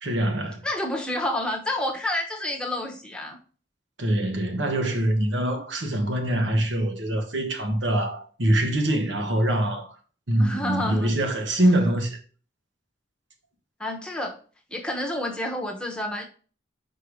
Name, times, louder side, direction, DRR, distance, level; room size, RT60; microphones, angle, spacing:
voice 1, 0.0-0.7 4.0-10.0 10.3-12.2, right 1 dB, 70° right, 1.4 m, -24 dB
voice 2, 0.6-3.4 10.4-11.1 13.8-14.4 14.7-16.2, left 1 dB, 5° left, 0.9 m, -29 dB
4.8 x 4.6 x 4.8 m
head